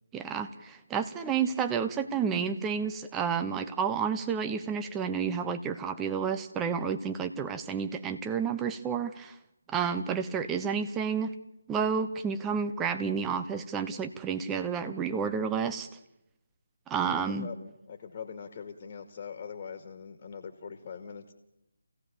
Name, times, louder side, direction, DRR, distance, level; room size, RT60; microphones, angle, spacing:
voice 1, 0.1-9.4 9.7-11.3 11.7-15.9 16.9-17.5, right 6 dB, 10° right, 8 dB, 0.9 m, -30 dB
voice 2, 17.1-21.3, left 6 dB, 30° left, 5 dB, 2.2 m, -42 dB
28.5 x 17.0 x 7.0 m, 0.89 s
figure-of-eight pair, 160°, 0 cm